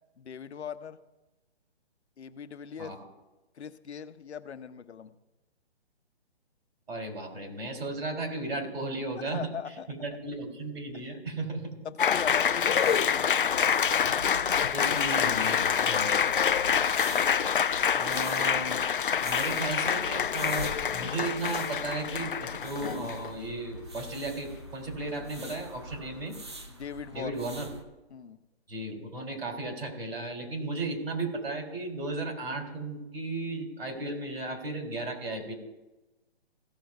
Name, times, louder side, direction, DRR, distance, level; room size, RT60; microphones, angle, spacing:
voice 1, 0.2-1.0 2.2-3.0 3.5-5.1 9.2-10.1 10.9-11.0 11.8-13.9 15.8-16.0 26.7-27.3 28.1-28.4, left 7 dB, 85° left, 11 dB, 1.0 m, -40 dB
voice 2, 6.9-9.4 9.9-11.7 14.7-16.4 17.9-18.9 19.2-26.4 27.1-27.7 28.7-35.5, right 2 dB, 65° right, 3 dB, 3.2 m, -35 dB
Applause, 12.0-23.3, left 7 dB, 55° left, 0.4 m, -26 dB
sound 1, 12.1-27.8, equal, 25° right, 0.6 m, -44 dB
16.5 x 6.5 x 4.7 m, 1.1 s
hypercardioid pair, 180°, 33 cm